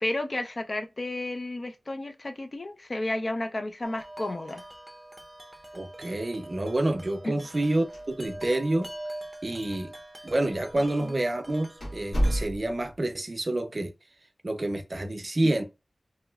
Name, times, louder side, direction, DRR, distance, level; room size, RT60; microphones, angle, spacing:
voice 1, 0.0-4.6 7.2-7.3 10.8-11.1, left 2 dB, 50° left, 0.5 m, -32 dB
Wind chime, 3.8-12.5, right 1 dB, 10° right, 0.6 m, -44 dB
voice 2, 5.7-8.9 9.4-9.9 10.2-13.9 14.4-15.6, right 1 dB, 45° right, 0.5 m, -28 dB
sound 1, 7.9-8.6 8.8-8.9 9.7-9.8 10.5-10.7 11.2-11.3 11.8-12.9, equal, 85° left, 1.6 m, -29 dB
3.1 x 2.8 x 2.3 m
cardioid pair, 50°, 0 cm